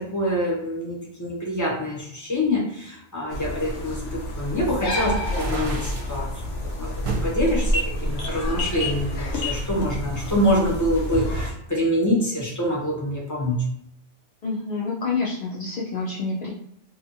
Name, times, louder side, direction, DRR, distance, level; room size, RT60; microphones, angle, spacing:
voice 1, 0.0-6.9 7.2-13.6, equal, 20° left, -4 dB, 0.6 m, -25 dB
sound 1, 3.3-11.5, left 1 dB, 85° left, 0.9 m, -28 dB
sound 2, 5.1-6.2 7.0-7.3 7.9-9.0, right 4 dB, 55° right, 0.8 m, -33 dB
voice 2, 14.4-16.5, left 4 dB, 65° left, -5 dB, 0.4 m, -28 dB
2.7 x 2.3 x 2.6 m, 0.74 s
omnidirectional pair, 1.2 m